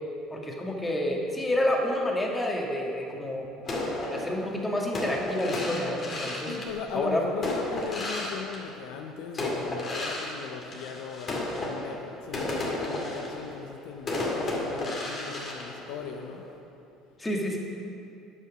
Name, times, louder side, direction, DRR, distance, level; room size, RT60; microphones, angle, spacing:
voice 1, 0.3-3.5 4.1-6.5 6.9-7.2 9.3-9.5 17.2-17.6, left 1 dB, 20° left, 0 dB, 1.8 m, -29 dB
sound 1, 3.6-9.0 9.4-16.5, left 2 dB, 40° left, 2.3 m, -33 dB
voice 2, 6.5-16.4, left 7 dB, 70° left, 5 dB, 0.6 m, -38 dB
10.5 x 5.5 x 6.1 m, 2.7 s
hypercardioid pair, 65°, 0 cm